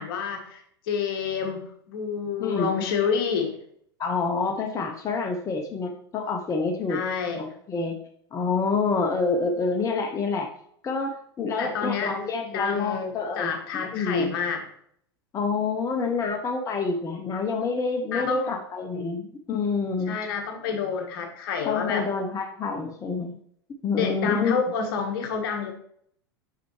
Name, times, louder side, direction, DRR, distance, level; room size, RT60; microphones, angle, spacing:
voice 1, 0.0-3.5 6.9-7.4 11.6-12.1 12.5-14.6 18.1-18.5 20.1-22.0 24.0-25.7, left 6 dB, 60° left, 4 dB, 1.3 m, -28 dB
voice 2, 2.4-2.8 4.0-7.0 7.4-8.0 8.3-10.5 10.8-13.5 13.9-14.4 15.3-20.2 21.6-23.4 23.8-24.6, left 4 dB, 25° left, 4 dB, 0.7 m, -27 dB
5.9 x 5.5 x 3.1 m, 0.65 s
hypercardioid pair, 95°, 13 cm